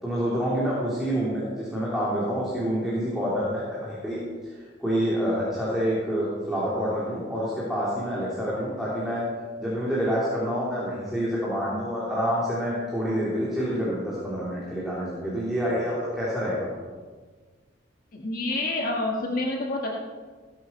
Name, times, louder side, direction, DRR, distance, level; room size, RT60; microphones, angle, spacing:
voice 1, 0.0-9.2 9.6-16.7, equal, ahead, -8 dB, 3.5 m, -27 dB
voice 2, 18.1-20.0, left 2 dB, 50° left, -1 dB, 1.5 m, -28 dB
19.0 x 8.4 x 5.7 m, 1.5 s
head